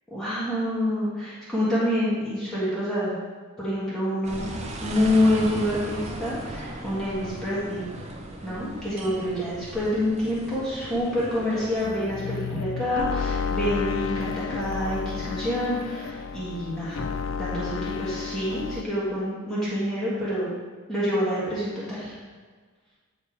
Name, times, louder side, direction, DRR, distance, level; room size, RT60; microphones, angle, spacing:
voice 1, 0.1-3.1 3.6-4.5 4.8-7.8 8.4-17.0 17.4-20.5 20.9-22.1, left 1 dB, ahead, -10 dB, 1.5 m, -27 dB
sound 1, 4.2-11.9, right 1 dB, 30° right, 0.7 m, -37 dB
sound 2, 11.8-18.8, left 6 dB, 60° left, 0.3 m, -31 dB
8.8 x 3.3 x 4.6 m, 1.5 s
head